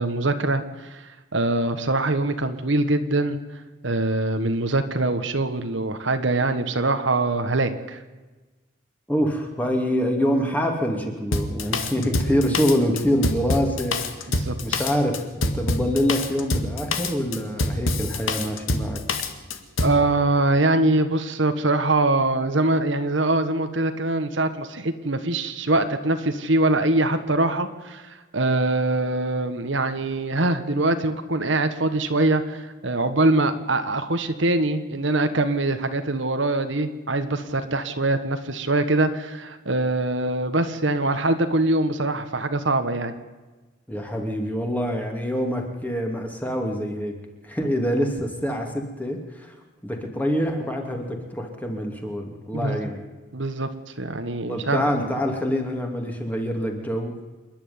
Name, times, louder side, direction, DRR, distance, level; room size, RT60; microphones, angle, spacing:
voice 1, 0.0-3.4 3.8-8.0 14.3-14.8 19.8-43.1 47.6-47.7 52.5-52.8 53.3-53.7 54.0-54.9, right 2 dB, 70° right, 8 dB, 1.6 m, -23 dB
voice 2, 9.1-14.3 14.6-19.0 43.9-47.2 47.4-49.5 49.8-53.0 54.5-57.2, equal, 10° left, 2 dB, 2.8 m, -25 dB
Drum kit, 11.3-20.0, left 2 dB, 80° left, 2.1 m, -26 dB
27.5 x 11.0 x 9.6 m, 1.2 s
head